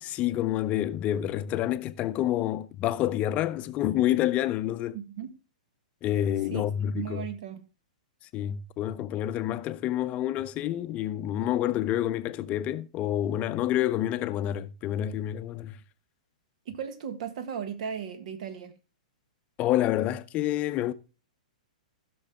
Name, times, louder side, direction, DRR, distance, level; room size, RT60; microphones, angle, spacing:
voice 1, 0.0-5.0 6.0-7.2 8.3-15.8 19.6-20.9, left 12 dB, 30° left, 0.6 m, -28 dB
voice 2, 4.9-5.3 6.5-6.6 6.9-7.6 16.6-18.7, right 8 dB, 60° right, 1.6 m, -36 dB
15.5 x 6.3 x 3.5 m
hypercardioid pair, 125°, 4 cm